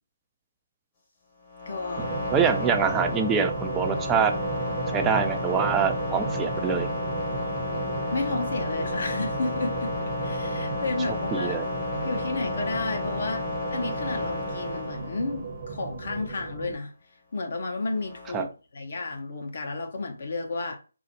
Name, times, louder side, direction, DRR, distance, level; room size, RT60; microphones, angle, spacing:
sound 1, 1.4-15.6 17.8-18.4, left 3 dB, 30° left, 1.1 m, -32 dB
voice 1, 1.7-2.1 8.1-9.9 10.2-11.6 12.0-13.5 13.7-16.9 17.3-20.8, left 3 dB, 55° left, 0.9 m, -32 dB
sound 2, 2.0-16.8, right 4 dB, 40° right, 0.8 m, -34 dB
voice 2, 2.3-4.3 4.9-6.9 11.3-11.6 18.3-18.5, right 6 dB, 10° right, 0.4 m, -25 dB
3.9 x 2.0 x 3.0 m
figure-of-eight pair, 150°, 0 cm